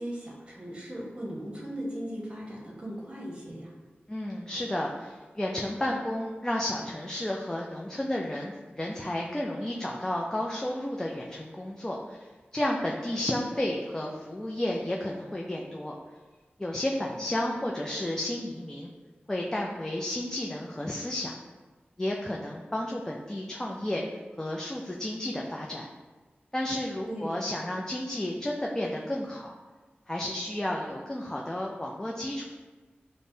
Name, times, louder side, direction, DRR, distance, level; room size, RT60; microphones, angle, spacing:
voice 1, 0.0-3.7 27.1-27.5, equal, 25° right, -4 dB, 0.9 m, -38 dB
voice 2, 4.1-12.2 12.5-15.9 16.6-18.9 19.3-21.3 22.0-24.0 24.4-25.9 26.5-29.5 30.1-32.5, left 1 dB, 15° left, -2 dB, 0.3 m, -32 dB
5.1 x 2.0 x 2.6 m, 1.3 s
wide cardioid pair, 65°, 4 cm